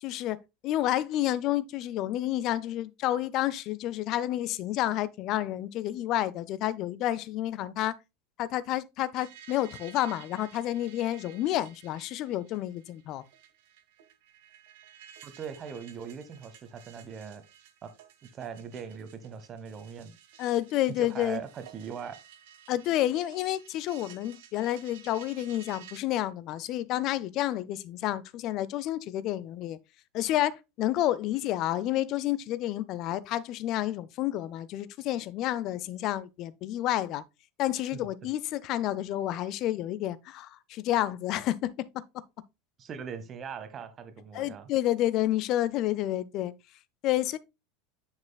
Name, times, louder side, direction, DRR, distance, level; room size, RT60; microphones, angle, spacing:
voice 1, 0.0-0.4 0.6-7.9 8.4-13.2 20.4-21.4 22.7-29.8 30.1-37.2 37.6-42.0 44.3-46.5 47.0-47.4, left 13 dB, 45° left, 0.5 m, -30 dB
sound 1, 9.1-26.0, right 10 dB, 55° right, 1.0 m, -54 dB
voice 2, 15.2-17.4 17.8-17.9 18.3-20.1 21.0-22.2 37.9-38.0 42.8-44.7, right 7 dB, 30° right, 1.0 m, -40 dB
7.3 x 6.2 x 2.2 m
figure-of-eight pair, 80°, 0 cm